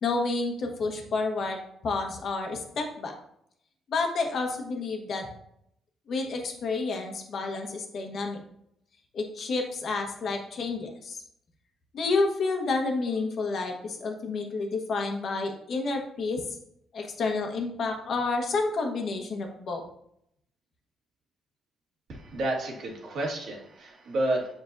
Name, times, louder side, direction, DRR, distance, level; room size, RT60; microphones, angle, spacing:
voice 1, 0.0-3.1 3.9-5.3 6.1-8.4 9.1-11.2 11.9-16.4 16.9-19.8, left 3 dB, 60° left, 3 dB, 1.3 m, -30 dB
voice 2, 22.1-24.5, right 1 dB, 65° right, -1 dB, 1.7 m, -30 dB
7.4 x 5.4 x 2.7 m, 0.72 s
cardioid pair, 90°, 0 cm